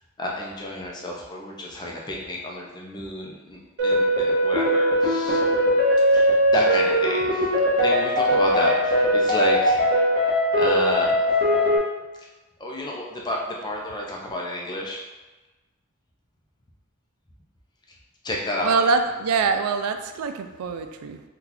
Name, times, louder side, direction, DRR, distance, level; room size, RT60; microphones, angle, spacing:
voice 1, 0.2-5.4 6.1-7.5 7.8-9.8 10.5-11.2 12.6-15.0 18.2-18.9, left 1 dB, 20° left, -1 dB, 0.5 m, -30 dB
sound 1, 3.8-11.8, equal, 50° right, 0.8 m, -20 dB
voice 2, 18.6-21.2, right 4 dB, 85° right, 8 dB, 0.3 m, -24 dB
2.9 x 2.4 x 3.8 m, 1.2 s
head